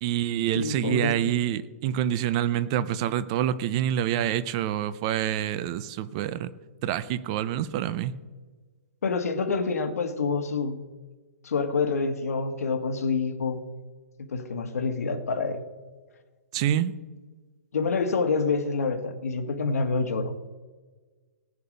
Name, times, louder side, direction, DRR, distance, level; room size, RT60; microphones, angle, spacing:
voice 1, 0.0-6.5 6.8-8.1 16.5-16.9, right 11 dB, 25° right, 15 dB, 0.4 m, -27 dB
voice 2, 0.5-1.1 9.0-10.8 11.4-13.6 14.3-15.6 17.7-20.3, left 4 dB, 80° left, 6 dB, 1.6 m, -27 dB
18.0 x 6.9 x 5.3 m, 1.4 s
hypercardioid pair, 170°, 8 cm